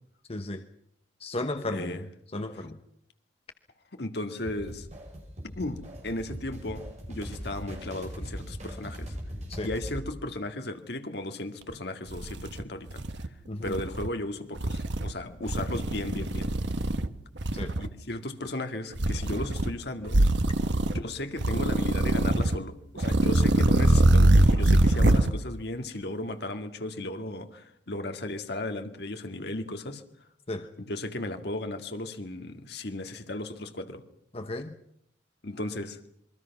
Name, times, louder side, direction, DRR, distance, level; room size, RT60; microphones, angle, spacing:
voice 1, 0.3-0.6 1.2-2.0 2.3-2.8 9.5-9.7 13.5-13.7 17.5-17.8 30.5-30.7 34.3-34.8, left 2 dB, 30° left, 7 dB, 1.0 m, -34 dB
voice 2, 1.7-2.0 2.5-2.7 3.9-4.9 5.4-9.2 9.6-13.0 13.6-16.5 17.8-20.2 20.9-30.0 30.8-34.0 35.4-36.0, left 1 dB, 60° left, 7 dB, 2.1 m, -35 dB
sound 1, 4.5-10.1, equal, 40° right, 6.8 m, -40 dB
sound 2, 11.7-11.8 12.1-13.3 13.6-14.1 14.6-15.1 15.5-17.1 17.4-17.9 19.0-19.7 20.1-21.0 21.4-22.6 23.0-25.3, right 1 dB, 70° right, 1.2 m, -23 dB
27.5 x 22.5 x 6.0 m, 0.74 s
head